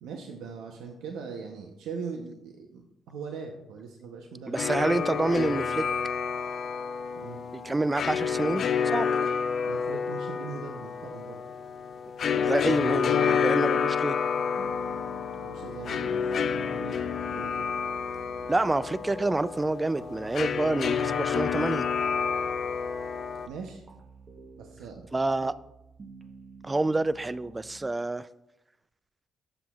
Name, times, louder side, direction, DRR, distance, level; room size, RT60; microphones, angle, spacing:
voice 1, 0.0-4.6 7.1-7.4 9.6-11.4 15.4-17.0 17.3-17.7 23.5-23.8 24.6-25.0 25.4-25.5, right 5 dB, 90° right, 2 dB, 0.7 m, -40 dB
voice 2, 4.5-5.8 7.5-8.6 8.9-9.1 12.3-14.2 18.5-21.9 25.1-25.5 26.6-28.3, right 2 dB, 20° right, 16 dB, 0.3 m, -27 dB
sound 1, 4.6-23.5, left 6 dB, 60° left, 0.5 m, -29 dB
sound 2, 14.6-27.9, right 4 dB, 40° right, 0.8 m, -49 dB
13.5 x 6.0 x 2.3 m, 0.90 s
cardioid pair, 90°, 0 cm